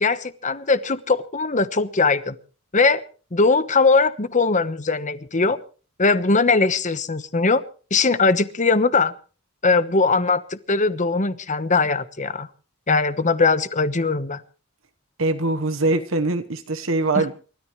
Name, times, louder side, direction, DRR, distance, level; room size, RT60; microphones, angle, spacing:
voice 1, 0.0-2.4 2.7-3.0 3.3-5.6 6.0-7.6 7.9-9.1 9.6-12.5 12.9-14.4 17.1-17.3, left 3 dB, 35° left, 1.1 m, -20 dB
voice 2, 15.2-17.3, right 2 dB, 75° right, 1.2 m, -22 dB
29.0 x 13.5 x 3.2 m
head